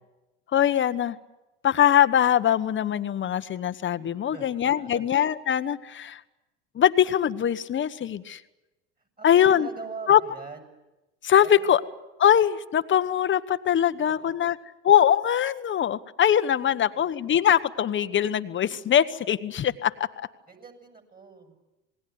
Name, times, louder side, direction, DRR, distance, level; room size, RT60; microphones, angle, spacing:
voice 1, 0.5-1.2 1.6-6.2 6.7-8.4 9.2-9.7 10.1-10.2 11.2-11.8 12.2-14.5 14.8-20.1, left 10 dB, 35° left, 12 dB, 1.2 m, -22 dB
voice 2, 4.1-5.0 9.2-10.7 11.4-11.8 14.0-14.5 16.7-17.0 20.5-21.6, right 5 dB, 25° right, 6 dB, 7.4 m, -43 dB
27.5 x 20.0 x 9.5 m, 1.0 s
hypercardioid pair, 85°, 35 cm